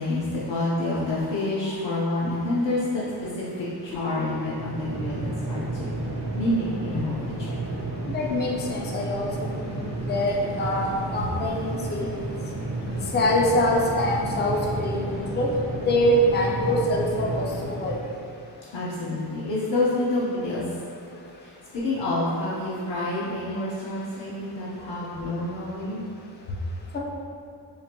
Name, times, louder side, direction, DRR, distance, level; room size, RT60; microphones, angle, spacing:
voice 1, 0.0-5.9 6.3-7.7 18.7-20.7 21.4-26.0 26.5-26.6, left 2 dB, 85° left, -8 dB, 0.7 m, -28 dB
sound 1, 4.4-18.2, right 2 dB, 35° right, 0.5 m, -32 dB
voice 2, 8.1-9.3 9.6-12.2 13.1-15.5 15.9-17.9 26.9-27.0, left 1 dB, 25° left, -1 dB, 0.3 m, -24 dB
5.0 x 2.5 x 2.9 m, 2.5 s
wide cardioid pair, 160°, 42 cm